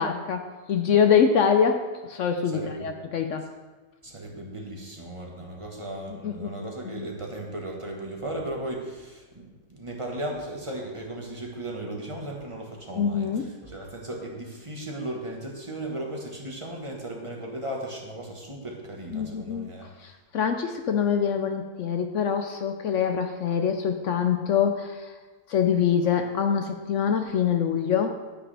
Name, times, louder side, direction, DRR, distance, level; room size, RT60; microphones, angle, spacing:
voice 1, 0.0-3.5 6.1-6.5 6.9-7.1 13.0-13.5 19.1-19.7 20.0-25.1 25.5-28.3, left 7 dB, 65° left, 6 dB, 0.8 m, -25 dB
voice 2, 2.4-2.9 4.0-19.9, right 1 dB, 20° right, 0 dB, 1.2 m, -36 dB
10.0 x 8.7 x 3.3 m, 1.3 s
omnidirectional pair, 1.7 m